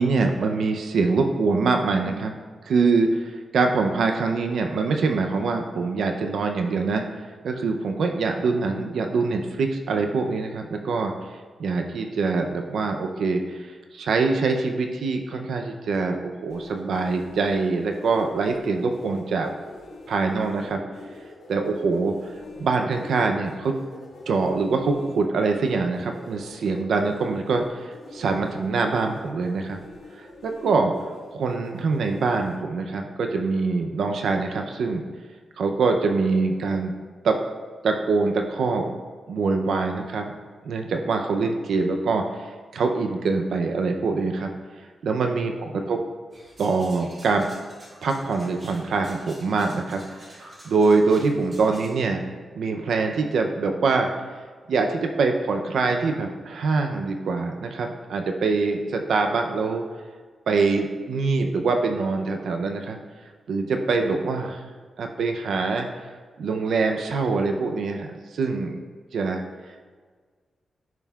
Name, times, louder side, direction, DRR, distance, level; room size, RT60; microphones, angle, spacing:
voice 1, 0.0-2.4 2.6-7.0 7.4-11.1 11.6-19.5 20.1-20.8 21.5-22.3 22.6-23.7 24.3-29.8 30.2-30.9 31.3-35.0 35.6-36.9 37.2-37.4 37.8-38.9 39.3-40.3 40.6-44.5 45.0-46.0 46.6-47.5 48.0-50.0 50.3-52.2 52.5-54.1 54.7-59.8 60.5-63.0 63.5-64.6 65.0-65.9 66.4-68.8 69.1-69.4, right 4 dB, 80° right, 4 dB, 0.5 m, -24 dB
sound 1, 16.5-32.6, left 2 dB, 90° left, 1.4 m, -45 dB
sound 2, 46.3-51.9, right 1 dB, 35° right, 2.1 m, -48 dB
10.5 x 5.6 x 2.3 m, 1.5 s
wide cardioid pair, 135°, 0 cm